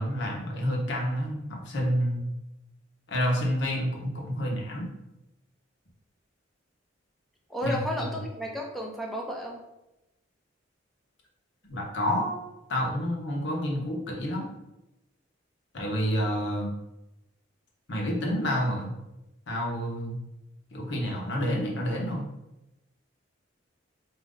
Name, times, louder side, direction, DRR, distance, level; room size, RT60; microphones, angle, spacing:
voice 1, 0.0-2.2 3.1-4.9 7.6-8.1 11.7-12.4 12.7-14.5 15.7-16.7 17.9-18.9 19.5-20.2 20.7-22.3, equal, 65° left, -2 dB, 1.0 m, -29 dB
voice 2, 7.5-9.6, left 1 dB, ahead, -1 dB, 0.5 m, -33 dB
4.3 x 2.6 x 3.7 m, 0.93 s
head